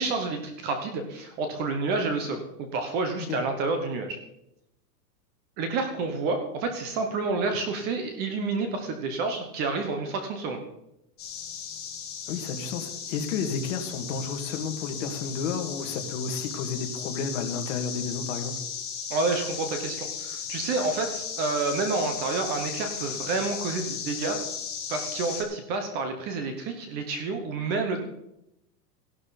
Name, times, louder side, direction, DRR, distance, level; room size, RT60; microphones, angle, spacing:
voice 1, 0.0-4.2 5.6-10.6 19.1-24.4 24.9-28.0, right 3 dB, 20° right, 5 dB, 0.9 m, -29 dB
sound 1, 11.2-25.4, left 7 dB, 20° left, 2.0 m, -36 dB
voice 2, 12.3-18.5, left 5 dB, 50° left, 5 dB, 2.1 m, -31 dB
16.0 x 11.5 x 4.0 m, 0.82 s
supercardioid pair, 175°, 49 cm